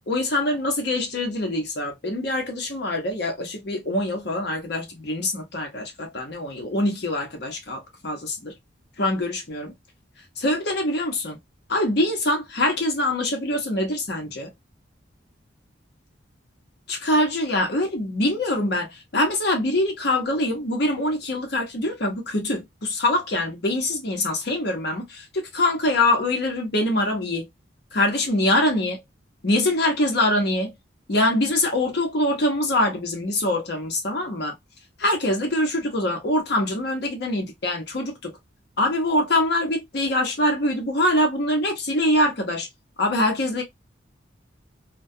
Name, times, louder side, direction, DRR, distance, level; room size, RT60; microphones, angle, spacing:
voice 1, 0.1-8.5 9.0-9.7 10.4-11.4 11.7-14.5 16.9-27.5 27.9-29.0 29.4-30.7 31.1-34.5 35.0-38.3 38.8-42.7 43.0-43.6, left 1 dB, 60° left, 0.8 m, -24 dB
2.3 x 2.2 x 2.6 m
head